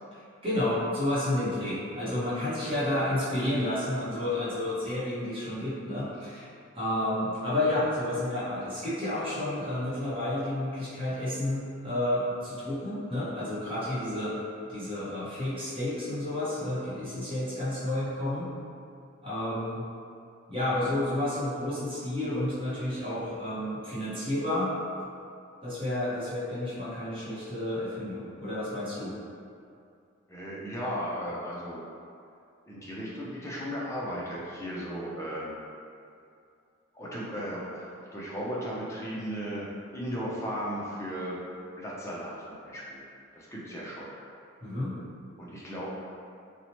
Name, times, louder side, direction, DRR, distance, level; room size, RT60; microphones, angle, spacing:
voice 1, 0.4-6.5 6.7-14.4 14.7-18.5 19.2-19.8 20.5-24.7 25.6-29.1 44.6-45.0, left 1 dB, 25° right, -10 dB, 0.8 m, -30 dB
voice 2, 30.3-31.8 32.7-35.5 36.9-41.4 41.8-43.0 43.4-44.1 45.4-45.9, equal, 15° left, -6 dB, 0.4 m, -36 dB
2.7 x 2.1 x 2.8 m, 2.5 s
head